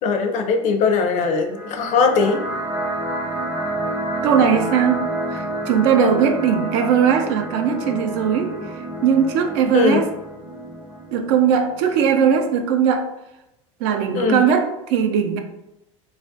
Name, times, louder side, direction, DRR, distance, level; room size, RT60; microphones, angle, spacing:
voice 1, 0.0-2.4 9.7-10.0 14.1-14.4, left 5 dB, 50° left, 5 dB, 0.4 m, -20 dB
sound 1, 1.5-12.5, right 1 dB, 15° right, 0.6 m, -29 dB
voice 2, 4.2-10.1 11.1-13.1 13.8-15.4, right 7 dB, 65° right, 5 dB, 0.4 m, -19 dB
2.3 x 2.1 x 2.6 m, 0.89 s
hypercardioid pair, 90°, 17 cm